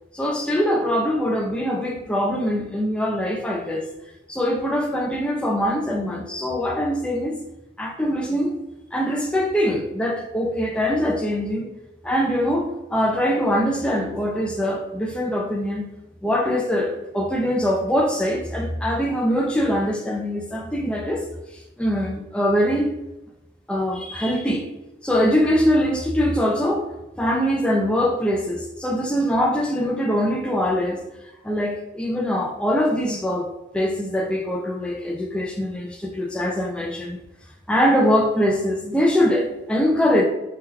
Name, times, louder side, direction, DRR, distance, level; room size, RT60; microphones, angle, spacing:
voice 1, 0.1-3.9 4.3-7.4 7.8-8.6 8.9-11.7 12.0-15.9 16.2-21.3 21.5-22.9 23.7-24.7 25.0-26.9 27.2-31.0 31.4-37.2 37.7-40.2, equal, 5° left, 1 dB, 0.3 m, -23 dB
2.8 x 2.2 x 3.6 m, 0.95 s
head